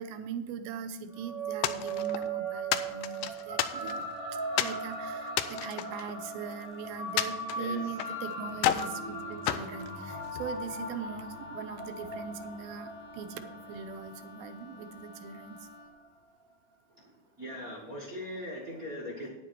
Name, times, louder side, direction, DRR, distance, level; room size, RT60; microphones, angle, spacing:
voice 1, 0.0-15.7, right 6 dB, 85° right, 8 dB, 2.5 m, -41 dB
sound 1, 1.1-15.8, right 2 dB, 30° right, 1.0 m, -39 dB
sound 2, 1.6-2.3 2.7-4.1 4.6-4.8 5.3-6.6 7.2-8.2 8.6-9.0 9.5-10.5, left 11 dB, 85° left, 1.9 m, -31 dB
Wind instrument woodwind instrument, 3.9-16.0, left 3 dB, 55° left, 1.2 m, -52 dB
voice 2, 17.4-19.3, left 1 dB, 65° right, -4 dB, 0.8 m, -40 dB
9.8 x 8.8 x 4.5 m, 1.0 s
omnidirectional pair, 4.3 m